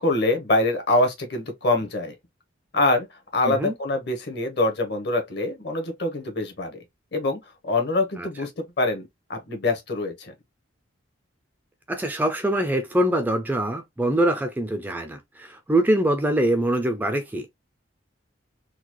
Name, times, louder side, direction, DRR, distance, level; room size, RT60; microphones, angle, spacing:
voice 1, 0.0-2.1 2.7-6.8 7.1-10.3, left 2 dB, 55° left, 1.1 m, -25 dB
voice 2, 11.9-17.5, right 1 dB, 10° right, 0.4 m, -24 dB
3.9 x 2.3 x 2.9 m
head